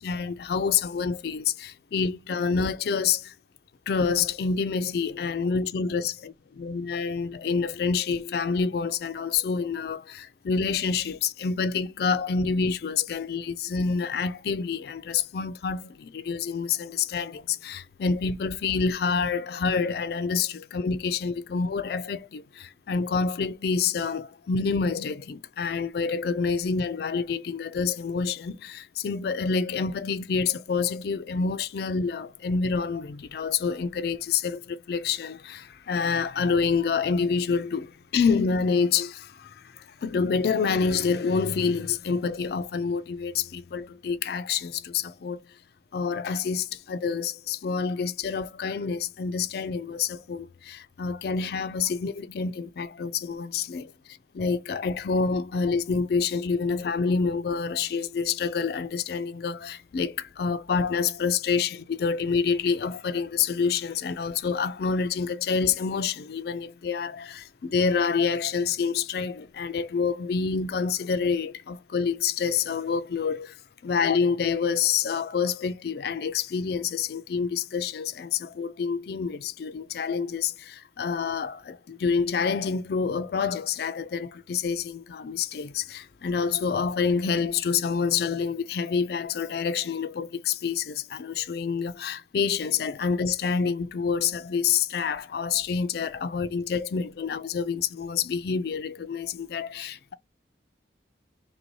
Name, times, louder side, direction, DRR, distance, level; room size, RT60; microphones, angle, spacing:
voice 1, 0.0-3.3 3.9-6.3 6.6-45.6 45.9-100.1, left 5 dB, 55° left, 0.3 m, -27 dB
3.2 x 2.7 x 4.5 m
head